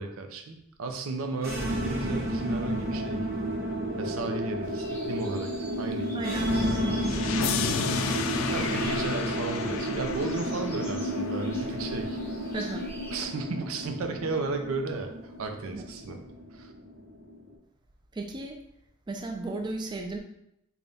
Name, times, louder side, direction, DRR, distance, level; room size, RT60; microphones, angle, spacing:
voice 1, 0.0-3.2 4.0-6.4 6.7-7.1 8.5-12.2 13.1-16.2 16.5-16.7, right 3 dB, 90° right, 5 dB, 0.5 m, -34 dB
sound 1, 1.4-17.4, equal, 50° right, 1.1 m, -32 dB
sound 2, 4.6-13.3, equal, 10° left, 0.6 m, -45 dB
voice 2, 6.1-6.5 12.5-12.8 15.7-15.8 18.1-18.6 19.1-20.2, right 2 dB, 20° right, 2 dB, 0.3 m, -34 dB
sound 3, 7.0-12.0, left 5 dB, 75° left, 0.3 m, -32 dB
3.4 x 2.3 x 3.9 m, 0.80 s
head